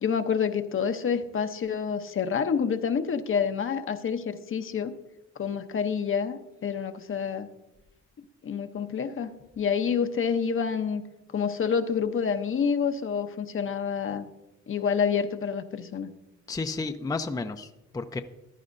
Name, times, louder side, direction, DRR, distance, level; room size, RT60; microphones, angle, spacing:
voice 1, 0.0-4.9 5.4-7.5 8.4-9.3 9.6-11.0 11.3-14.3 14.7-16.1, left 6 dB, 45° left, 9 dB, 0.7 m, -28 dB
voice 2, 16.5-18.2, left 3 dB, 15° left, 7 dB, 0.5 m, -32 dB
15.0 x 11.0 x 2.6 m, 0.95 s
cardioid pair, 90°, 30 cm